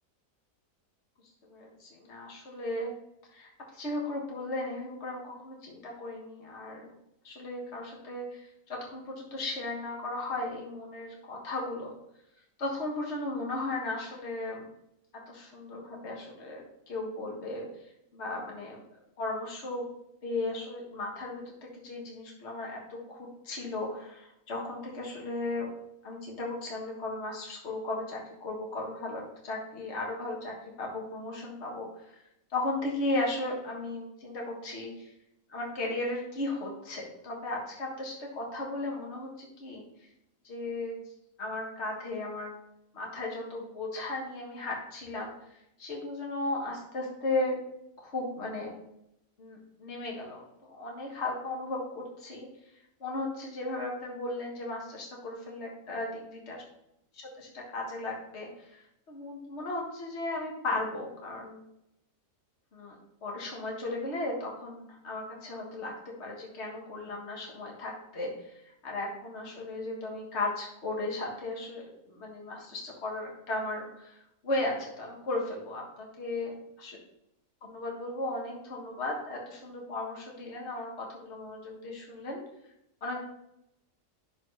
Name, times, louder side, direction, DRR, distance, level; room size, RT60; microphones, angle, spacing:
voice 1, 1.5-2.9 3.3-6.9 7.2-11.9 12.6-14.7 15.3-17.7 18.1-19.9 20.2-25.7 26.0-32.2 32.5-35.1 35.5-39.9 40.4-41.0 41.4-42.5 42.9-45.3 45.8-47.6 48.0-48.7 49.4-52.5 53.0-56.1 56.5-56.6 57.1-58.8 59.1-61.6 62.7-63.0 63.2-65.9 66.2-74.2 74.4-76.5 77.6-82.4 83.0-83.2, left 2 dB, 40° left, -1 dB, 1.7 m, -36 dB
11.0 x 4.2 x 3.2 m, 0.82 s
omnidirectional pair, 1.8 m